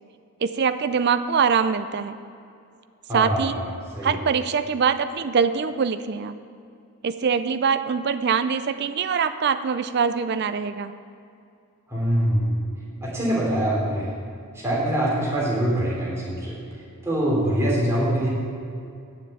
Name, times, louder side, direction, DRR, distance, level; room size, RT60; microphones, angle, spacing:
voice 1, 0.4-2.2 3.1-3.6 4.0-6.4 7.0-10.9, right 6 dB, 50° right, 10 dB, 0.4 m, -23 dB
voice 2, 3.1-4.2 11.9-12.6 13.0-14.1 14.5-16.6 17.0-18.3, right 1 dB, 15° right, -6 dB, 3.3 m, -24 dB
9.3 x 7.4 x 8.0 m, 2.4 s
head